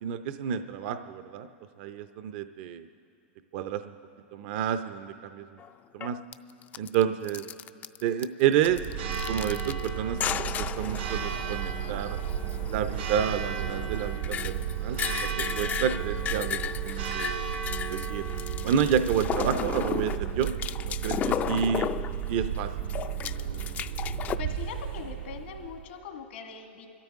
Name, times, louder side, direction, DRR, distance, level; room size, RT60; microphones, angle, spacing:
voice 1, 0.0-1.5 1.8-2.9 3.5-3.9 4.3-5.4 5.9-6.2 6.8-7.4 8.0-8.8 9.3-12.2 12.7-15.3 15.5-16.6 16.8-17.3 17.9-18.3 18.6-20.5 20.8-21.9 22.3-22.9, right 9 dB, 55° right, 9 dB, 0.6 m, -29 dB
sound 1, 5.6-5.7 6.0-6.3 6.6-7.0 7.3-8.2 8.5-9.9 10.2-22.6 22.9-24.4, left 9 dB, 25° left, 0.3 m, -35 dB
Church bell, 8.6-25.9, right 8 dB, 80° right, 2.2 m, -33 dB
voice 2, 24.4-26.9, left 6 dB, 75° left, 4 dB, 1.8 m, -41 dB
26.5 x 13.0 x 3.6 m, 2.5 s
hypercardioid pair, 125°, 6 cm